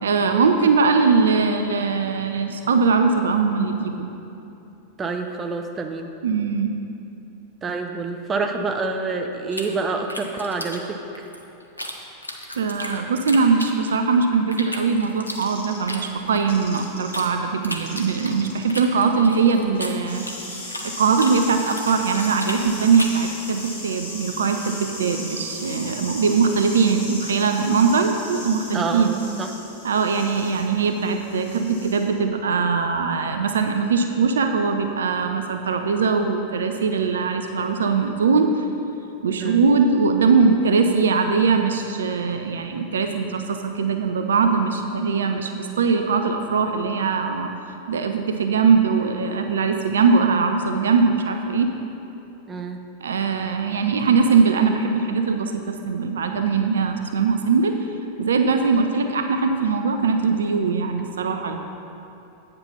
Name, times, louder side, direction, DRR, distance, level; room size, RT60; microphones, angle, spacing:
voice 1, 0.0-4.1 6.2-6.7 12.6-20.2 20.8-29.2 29.8-38.6 39.2-47.5 47.9-51.7 53.0-57.7 58.2-61.6, right 5 dB, 65° right, 5 dB, 0.5 m, -21 dB
voice 2, 5.0-6.1 7.6-11.0 28.7-29.5 39.4-39.6 52.5-52.8, right 4 dB, 20° right, 5 dB, 0.6 m, -27 dB
sound 1, 9.5-11.9 12.2-14.1 14.5-17.3 17.6-20.9 21.2-23.2, left 1 dB, 85° left, 0.7 m, -34 dB
sound 2, 15.3-17.3 17.6-32.1, left 1 dB, 65° left, 2.0 m, -37 dB
8.7 x 5.2 x 5.7 m, 2.8 s
figure-of-eight pair, 90°, 0 cm